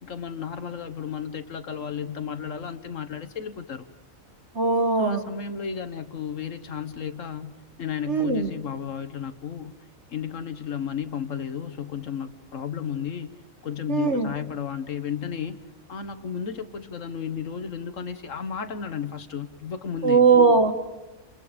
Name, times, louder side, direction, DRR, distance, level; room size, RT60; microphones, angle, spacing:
voice 1, 0.0-3.9 5.0-7.5 7.8-9.7 10.1-13.3 13.6-15.6 15.9-20.2, left 7 dB, 65° left, 10 dB, 1.5 m, -33 dB
voice 2, 4.5-5.2 8.1-8.5 13.9-14.3 20.0-20.7, right 4 dB, 55° right, 7 dB, 1.7 m, -19 dB
30.0 x 28.5 x 5.1 m, 1.1 s
omnidirectional pair, 1.4 m